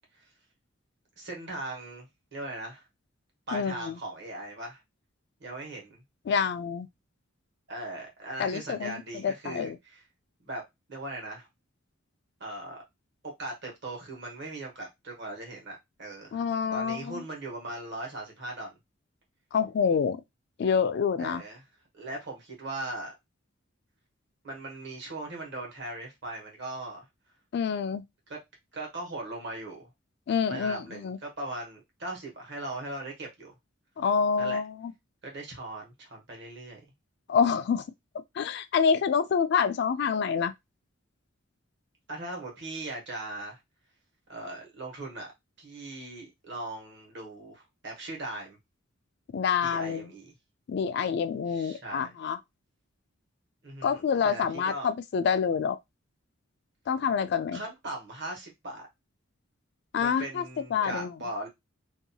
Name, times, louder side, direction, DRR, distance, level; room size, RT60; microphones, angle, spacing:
voice 1, 1.2-2.9 3.5-4.8 5.4-6.0 7.7-10.0 10.4-10.6 10.9-11.5 12.4-12.8 13.2-16.4 16.7-18.8 21.2-21.6 21.9-23.1 24.4-27.0 28.3-28.4 28.7-29.9 30.5-33.6 34.4-34.6 35.2-36.8 42.1-43.6 44.3-45.3 45.6-48.6 49.6-50.3 51.5-52.1 53.6-54.0 54.2-54.9 57.5-58.9 59.9-61.5, right 2 dB, 55° right, 1.1 m, -39 dB
voice 2, 3.5-3.9 6.3-6.9 8.4-9.8 16.3-17.2 19.5-20.2 20.6-21.4 27.5-28.0 30.3-31.2 34.0-34.9 37.3-37.8 38.4-40.5 49.3-50.1 50.7-52.4 53.8-55.8 56.9-57.6 59.9-60.4 60.7-61.1, left 6 dB, 55° left, 0.3 m, -27 dB
2.7 x 2.3 x 2.7 m
head